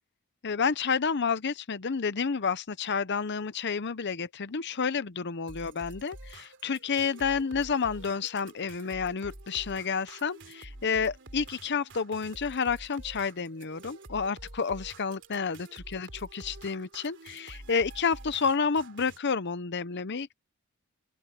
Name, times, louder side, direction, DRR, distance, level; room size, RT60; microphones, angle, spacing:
voice 1, 0.4-20.4, left 5 dB, 50° left, 0.7 m, -30 dB
sound 1, 5.5-19.2, right 2 dB, 55° right, 3.0 m, -48 dB
open air
head